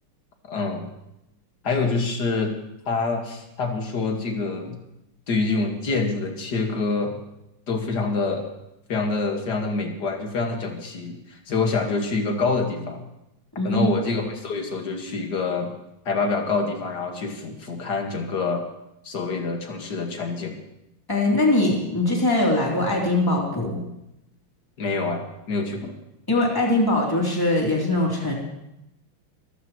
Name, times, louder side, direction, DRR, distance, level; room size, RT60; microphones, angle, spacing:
voice 1, 0.5-0.8 1.6-2.5 2.9-4.8 5.3-7.2 7.7-8.5 8.9-13.0 13.6-15.7 16.1-18.6 19.0-20.5 24.8-25.9, left 3 dB, 55° left, 3 dB, 2.4 m, -26 dB
voice 2, 13.6-13.9 21.1-23.8 26.3-28.3, left 2 dB, 10° left, -3 dB, 3.2 m, -21 dB
22.5 x 15.0 x 3.1 m, 0.88 s
omnidirectional pair, 2.3 m